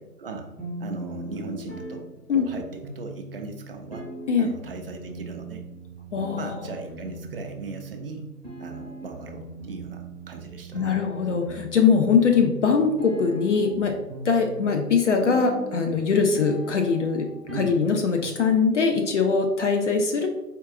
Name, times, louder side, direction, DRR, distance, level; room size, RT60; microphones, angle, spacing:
voice 1, 0.2-0.5 0.8-4.1 4.4-5.6 6.3-8.3 8.6-11.0 17.5-17.8, right 3 dB, 40° right, 3 dB, 0.5 m, -38 dB
sound 1, 0.6-18.6, right 1 dB, 10° left, 0.8 m, -40 dB
voice 2, 6.1-6.6 10.7-13.9 14.2-17.3 17.6-20.3, left 5 dB, 50° left, 4 dB, 0.5 m, -22 dB
4.5 x 2.3 x 3.6 m, 0.96 s
hypercardioid pair, 145°, 48 cm